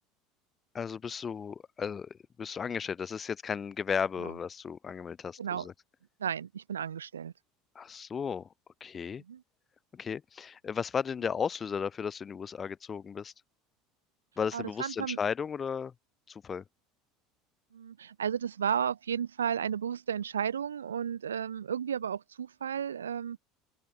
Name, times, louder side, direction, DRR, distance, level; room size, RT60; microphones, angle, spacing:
voice 1, 0.7-5.7 7.8-8.5 8.8-9.2 9.9-13.3 14.4-15.9 16.3-16.6, left 6 dB, 30° left, 0.6 m, -35 dB
voice 2, 6.2-7.3 9.3-9.4 14.5-15.2 17.7-23.4, right 8 dB, 75° right, 0.8 m, -33 dB
open air
figure-of-eight pair, 70°, 0 cm